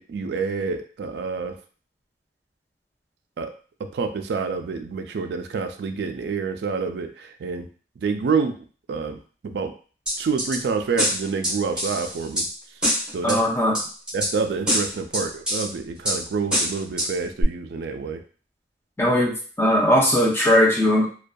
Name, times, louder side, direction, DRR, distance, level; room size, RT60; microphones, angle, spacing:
voice 1, 0.0-1.5 3.4-3.5 3.8-7.7 8.0-8.6 8.9-9.2 9.4-9.7 10.2-12.5 13.1-13.4 14.1-18.2, right 5 dB, 65° right, 6 dB, 0.3 m, -27 dB
sound 1, 10.1-10.6 11.0-12.5 12.8-13.4 13.7-14.3 14.7-15.7 16.0-16.2 16.5-17.1 17.4-17.5, equal, 5° right, 0.8 m, -24 dB
voice 2, 13.2-13.8 19.0-21.1, left 1 dB, 15° left, -1 dB, 0.5 m, -19 dB
2.5 x 2.2 x 2.2 m, 0.40 s
head